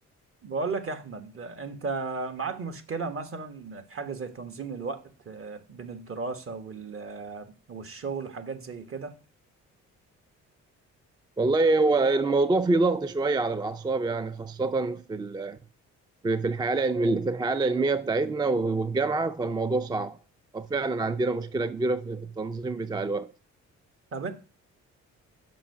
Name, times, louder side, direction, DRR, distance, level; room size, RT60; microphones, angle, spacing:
voice 1, 0.4-9.1 24.1-24.3, right 4 dB, 45° right, 1.3 m, -35 dB
voice 2, 11.4-15.6 16.2-20.2 20.5-23.3, right 3 dB, 15° right, 0.3 m, -26 dB
6.1 x 5.4 x 4.8 m
cardioid pair, 90°, 30 cm